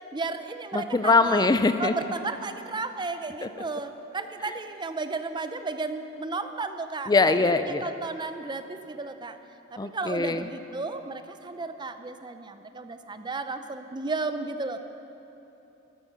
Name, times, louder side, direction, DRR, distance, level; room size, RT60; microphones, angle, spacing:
voice 1, 0.1-1.5 1.8-7.4 7.8-9.4 9.7-14.8, right 3 dB, 25° right, 9 dB, 0.6 m, -33 dB
voice 2, 0.7-1.9 3.4-3.5 4.4-4.5 7.1-7.9 9.8-10.5, left 3 dB, 20° left, 10 dB, 0.4 m, -22 dB
13.5 x 13.0 x 5.7 m, 2.9 s
head